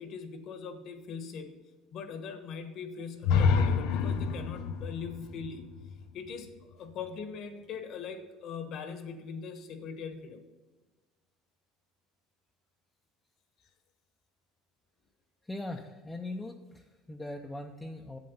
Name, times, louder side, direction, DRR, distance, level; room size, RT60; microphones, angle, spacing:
voice 1, 0.0-1.6 1.9-5.7 6.1-10.4, left 6 dB, 50° left, 8 dB, 1.2 m, -41 dB
sound 1, 3.2-7.1, left 5 dB, 70° left, 0.8 m, -29 dB
voice 2, 15.4-18.2, left 2 dB, 10° left, 2 dB, 0.6 m, -40 dB
7.7 x 7.6 x 5.6 m, 1.2 s
cardioid pair, 130°, 0 cm